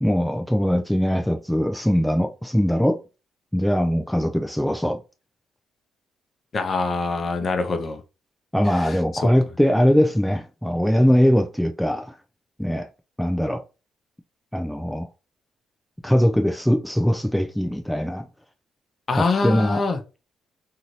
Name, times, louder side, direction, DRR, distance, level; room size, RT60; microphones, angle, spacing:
voice 1, 0.0-3.0 3.5-5.0 8.5-12.1 12.6-12.9 13.2-13.6 14.5-15.1 16.0-18.3 19.1-19.8, equal, ahead, 0.3 m, -21 dB
voice 2, 6.5-8.0 8.7-9.0 19.1-20.0, left 3 dB, 40° left, 0.6 m, -24 dB
2.7 x 2.6 x 3.0 m
cardioid pair, 90°, 0 cm